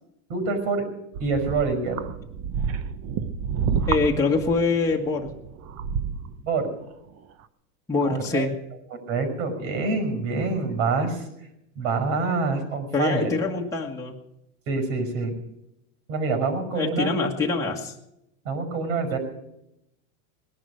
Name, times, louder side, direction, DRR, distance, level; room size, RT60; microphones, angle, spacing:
voice 1, 0.3-0.8 1.2-2.0 6.4-6.7 8.0-8.5 9.1-11.3 11.8-13.3 14.7-15.3 16.1-17.1 18.4-19.2, right 4 dB, 70° right, 7 dB, 5.9 m, -26 dB
sound 1, 1.1-6.4 7.2-7.3, right 6 dB, 35° right, 1.0 m, -30 dB
voice 2, 3.9-5.3 7.9-8.5 12.9-14.1 16.7-17.9, left 4 dB, 5° left, -2 dB, 1.5 m, -24 dB
19.5 x 11.5 x 6.3 m, 0.83 s
supercardioid pair, 140°, 41 cm